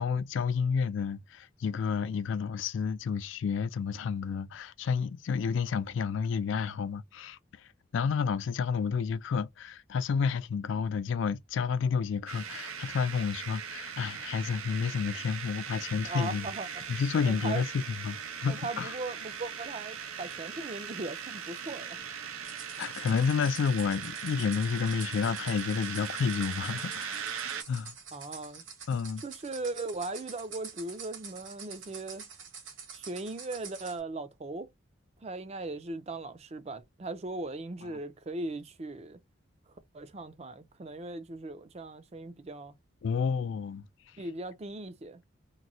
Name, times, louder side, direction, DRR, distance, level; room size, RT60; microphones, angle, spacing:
voice 1, 0.0-16.5 16.9-19.0 22.8-27.2 27.7-27.9 28.9-29.2 43.0-43.9, left 6 dB, 65° left, 0.3 m, -30 dB
sound 1, 12.3-27.6, right 7 dB, 90° right, 0.6 m, -39 dB
voice 2, 16.0-16.7 17.3-17.6 18.4-22.0 28.1-28.6 29.2-32.3 32.9-34.7 35.2-39.2 39.9-42.7 44.2-45.2, right 2 dB, 30° right, 0.4 m, -38 dB
sound 2, 22.4-34.0, right 6 dB, 65° right, 1.2 m, -47 dB
3.0 x 2.7 x 2.6 m
head